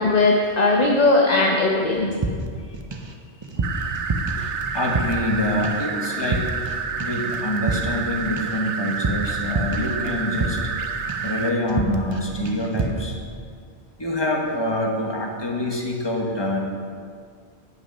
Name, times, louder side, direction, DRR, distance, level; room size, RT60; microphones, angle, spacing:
voice 1, 0.0-2.1, left 2 dB, 40° left, 0 dB, 0.8 m, -18 dB
sound 1, 2.2-3.1 3.4-5.4 5.6-5.9 6.2-6.7 7.0-10.8 11.1-11.4 11.7-12.2 12.5-13.1, right 2 dB, 35° right, 0.5 m, -28 dB
sound 2, 3.6-11.5, right 6 dB, 85° right, 1.0 m, -29 dB
voice 2, 4.4-6.4 6.7-10.6 11.2-13.2 14.0-16.6, left 1 dB, 25° left, 0 dB, 1.2 m, -26 dB
9.5 x 6.1 x 5.3 m, 2.1 s
omnidirectional pair, 1.1 m